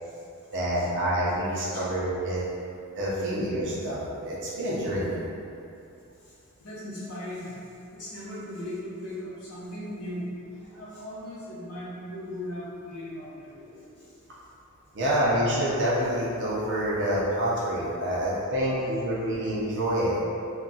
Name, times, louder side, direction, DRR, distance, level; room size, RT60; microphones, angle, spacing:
voice 1, 0.5-2.4 3.0-5.2 14.9-20.1, equal, 55° right, -8 dB, 0.6 m, -27 dB
voice 2, 6.6-7.6 7.9-10.3 10.6-14.1 18.2-18.9, left 1 dB, 90° left, -9 dB, 0.8 m, -38 dB
2.3 x 2.2 x 3.9 m, 2.6 s
head